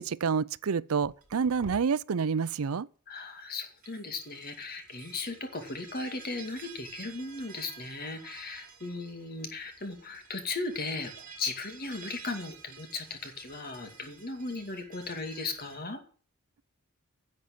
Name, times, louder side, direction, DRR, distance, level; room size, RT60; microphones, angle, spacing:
voice 1, 0.0-2.9, right 5 dB, 75° right, 0.5 m, -28 dB
sound 1, 1.0-1.8 3.7-15.8, right 5 dB, 40° right, 5.5 m, -51 dB
voice 2, 3.1-11.1 11.4-16.0, left 3 dB, 45° left, 2.3 m, -37 dB
10.5 x 7.8 x 8.6 m
head